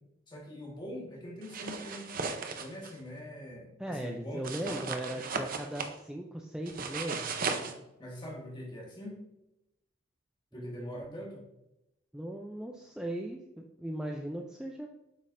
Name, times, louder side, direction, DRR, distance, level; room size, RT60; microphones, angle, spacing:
voice 1, 0.3-2.1 2.6-4.9 7.4-7.7 8.0-9.2 10.5-11.4, equal, 25° left, -1 dB, 1.5 m, -43 dB
sound 1, 1.4-2.9 4.4-5.9 6.7-7.7, right 4 dB, 50° right, 0.6 m, -36 dB
voice 2, 3.8-7.6 10.5-11.2 12.1-14.9, right 1 dB, 5° right, 1 dB, 0.4 m, -38 dB
8.3 x 5.3 x 2.5 m, 0.89 s
head